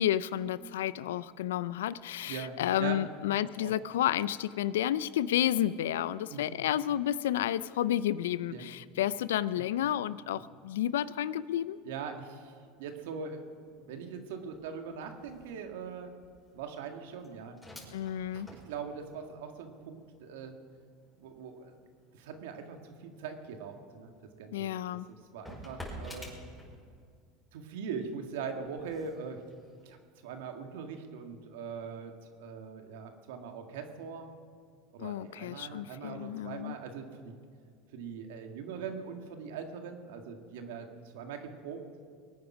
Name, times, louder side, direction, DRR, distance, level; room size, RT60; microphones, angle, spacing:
voice 1, 0.0-11.8 17.9-18.5 24.5-25.1 35.0-36.7, left 11 dB, 85° left, 18 dB, 0.4 m, -31 dB
voice 2, 2.3-3.0 3.6-3.7 6.3-6.5 8.5-8.7 9.6-9.7 11.8-13.4 13.7-16.1 16.5-17.6 18.3-20.5 21.2-21.8 22.1-24.1 24.4-24.7 25.3-26.3 27.5-29.4 29.8-30.0 30.2-34.3 34.9-37.3 37.9-40.9 41.1-41.8, right 6 dB, 75° right, 5 dB, 1.8 m, -41 dB
sound 1, 12.8-27.2 27.6-30.7, equal, 5° left, 5.3 m, -52 dB
22.5 x 9.5 x 6.1 m, 2.1 s
hypercardioid pair, 95°, 0 cm